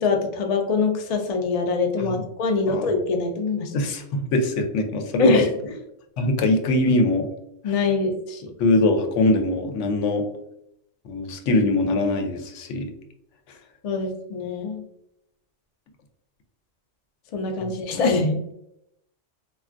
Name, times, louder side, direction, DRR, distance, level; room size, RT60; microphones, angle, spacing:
voice 1, 0.0-3.7 5.2-5.8 7.6-8.5 13.8-14.8 17.3-18.5, left 3 dB, 55° left, 3 dB, 0.4 m, -23 dB
voice 2, 3.7-5.4 6.2-7.3 8.6-10.2 11.1-12.9 17.6-17.7, left 2 dB, 80° left, 4 dB, 0.9 m, -22 dB
3.3 x 2.3 x 2.4 m, 0.79 s
omnidirectional pair, 1.2 m